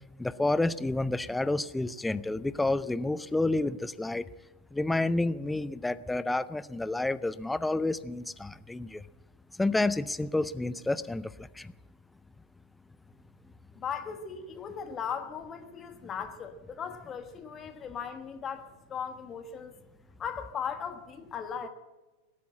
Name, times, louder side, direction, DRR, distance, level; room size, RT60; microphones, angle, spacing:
voice 1, 0.2-4.2 4.7-9.0 9.6-11.7, left 2 dB, 5° left, 0.4 m, -29 dB
voice 2, 13.8-19.7 20.2-21.7, left 7 dB, 25° left, 1.3 m, -38 dB
19.0 x 8.5 x 8.7 m
figure-of-eight pair, 90°, 0 cm